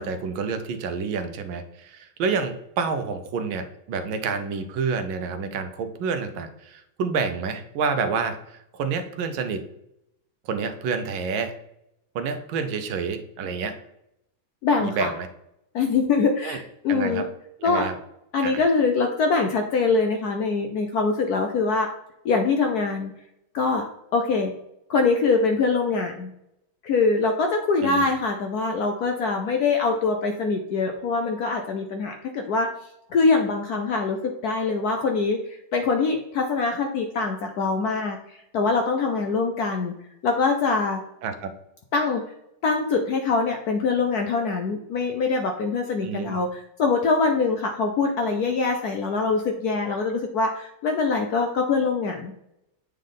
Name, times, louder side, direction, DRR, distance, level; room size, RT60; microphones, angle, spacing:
voice 1, 0.0-9.6 10.4-11.6 12.1-13.8 14.8-15.3 16.4-16.6 16.9-17.3 17.6-18.0 18.4-18.6 27.8-28.1 41.2-41.5 46.0-46.4, right 5 dB, 75° right, 8 dB, 1.4 m, -28 dB
voice 2, 14.6-15.1 15.7-17.2 17.6-17.9 18.3-21.9 22.2-23.1 23.5-23.9 24.1-24.5 24.9-26.3 26.8-32.7 33.1-35.4 35.7-39.9 40.2-41.0 41.9-42.2 42.6-52.3, left 4 dB, 70° left, 4 dB, 0.9 m, -23 dB
8.4 x 3.4 x 3.8 m, 0.80 s
omnidirectional pair, 2.2 m